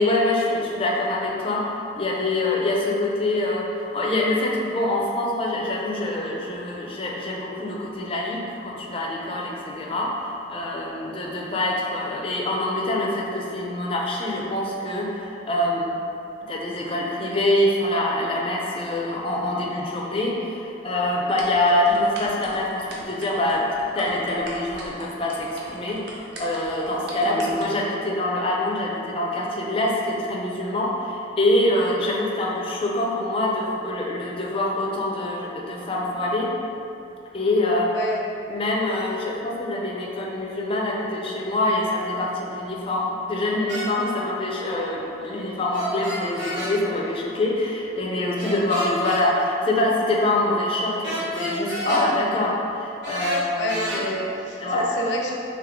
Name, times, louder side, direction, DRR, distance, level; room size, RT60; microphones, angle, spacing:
voice 1, 0.0-1.6 2.0-15.9 16.5-23.6 23.9-36.5 37.3-37.9 38.5-53.9 54.6-54.9, left 1 dB, 30° left, -2 dB, 0.5 m, -25 dB
sound 1, 21.4-27.6, right 1 dB, 65° right, 0.7 m, -36 dB
sound 2, 43.7-43.9 45.7-46.7 48.4-49.2 51.0-52.1 53.0-54.0, equal, 85° right, 1.1 m, -30 dB
voice 2, 53.5-55.3, equal, 85° left, -1 dB, 0.6 m, -29 dB
3.7 x 3.1 x 3.5 m, 2.7 s
head